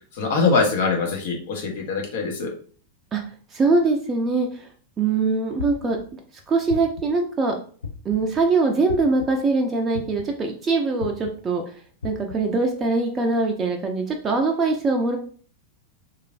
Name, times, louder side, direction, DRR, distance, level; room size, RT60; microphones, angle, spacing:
voice 1, 0.2-2.5, left 4 dB, 55° left, 2 dB, 0.7 m, -23 dB
voice 2, 3.5-4.7 5.0-6.0 6.5-7.6 8.0-11.6 12.0-15.2, right 3 dB, 20° right, 2 dB, 0.4 m, -22 dB
sound 1, 5.6-6.0 6.7-7.2 7.8-8.3 8.9-9.3 9.9-10.4 11.0-11.3 12.0-12.4, left 6 dB, 70° left, 0.4 m, -33 dB
3.1 x 2.4 x 2.4 m, 0.43 s
figure-of-eight pair, 90°, 0 cm